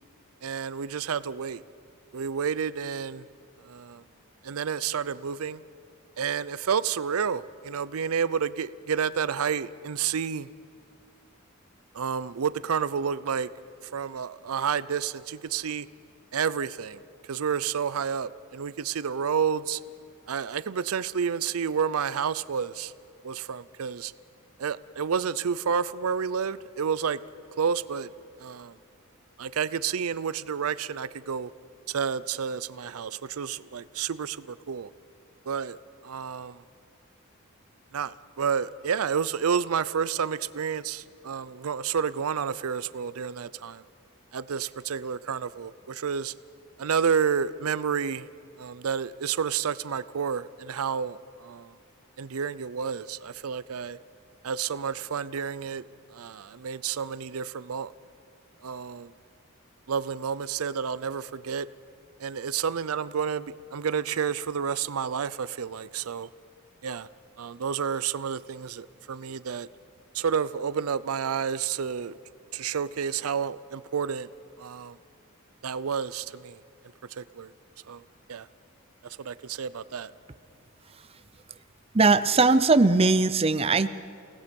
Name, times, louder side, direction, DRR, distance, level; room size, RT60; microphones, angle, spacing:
voice 1, 0.4-1.6 2.1-3.3 3.6-4.0 4.4-5.6 6.2-10.5 11.9-13.5 13.8-15.9 16.3-19.8 20.3-22.9 23.2-24.1 24.6-27.2 27.6-28.1 28.4-28.8 29.4-31.5 31.9-34.9 35.5-35.8 36.0-36.6 37.9-43.8 44.3-46.3 46.8-48.3 48.6-51.7 52.2-54.0 54.4-55.8 56.1-57.9 58.6-59.1 59.9-61.7 62.2-66.3 66.8-67.1 67.4-69.7 70.1-72.1 72.5-74.3 74.6-75.0 75.6-76.6 77.1-77.5 77.9-78.0 78.3-78.5 79.0-80.1, right 7 dB, 90° right, 17 dB, 0.5 m, -30 dB
voice 2, 81.9-83.9, right 3 dB, 25° right, 12 dB, 0.6 m, -20 dB
29.5 x 18.0 x 5.3 m, 2.5 s
head